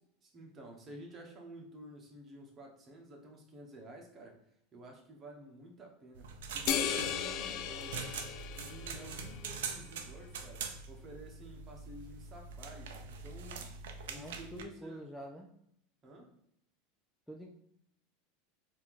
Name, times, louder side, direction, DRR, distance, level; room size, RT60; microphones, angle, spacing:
voice 1, 0.2-4.4 4.7-8.0 8.5-13.6 14.1-15.0 16.0-16.3, right 1 dB, 30° right, 1 dB, 1.2 m, -51 dB
sound 1, 6.1-14.6, right 5 dB, 85° right, 0.6 m, -44 dB
sound 2, 6.7-9.4, left 9 dB, 55° left, 0.4 m, -36 dB
voice 2, 14.1-15.5 17.3-17.5, equal, ahead, 0 dB, 0.5 m, -46 dB
4.4 x 2.9 x 3.7 m, 0.72 s
supercardioid pair, 120°, 0 cm